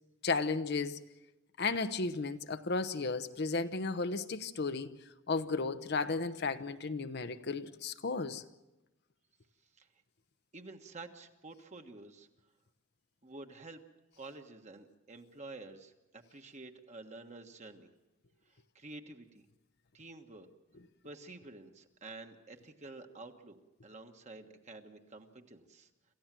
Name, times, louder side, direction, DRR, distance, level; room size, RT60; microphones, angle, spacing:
voice 1, 0.2-1.0 1.6-5.0 5.3-8.4, left 3 dB, 55° left, 0.9 m, -34 dB
voice 2, 10.5-12.3 13.2-13.8 14.2-17.9 18.7-19.4 19.9-20.5 21.0-23.6 23.8-25.9, right 2 dB, 35° right, 1.5 m, -50 dB
27.0 x 15.0 x 7.6 m
head